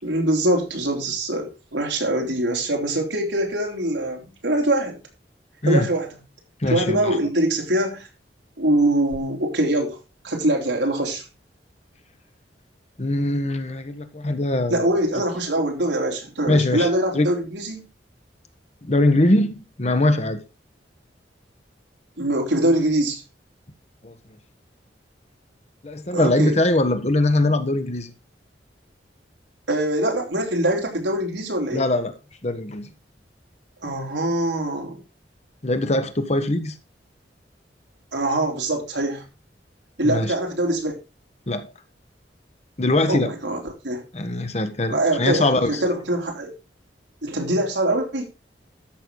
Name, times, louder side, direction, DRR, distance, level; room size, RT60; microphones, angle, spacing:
voice 1, 0.0-5.0 5.7-6.1 6.7-8.1 8.6-10.0 10.2-11.2 14.7-17.9 22.2-23.2 26.1-26.6 29.7-31.8 33.8-35.0 38.1-39.2 40.0-40.9 43.1-43.6 43.8-44.0 44.9-46.5 47.2-48.3, right 1 dB, 90° right, 3.6 m, -23 dB
voice 2, 6.6-7.2 13.0-15.0 16.5-17.3 18.8-20.4 24.0-24.1 25.8-28.1 31.7-32.1 32.4-32.9 35.6-36.8 40.0-40.3 41.5-41.7 42.8-43.3 44.1-45.8, left 2 dB, 40° left, 1.3 m, -22 dB
13.5 x 6.5 x 3.9 m
head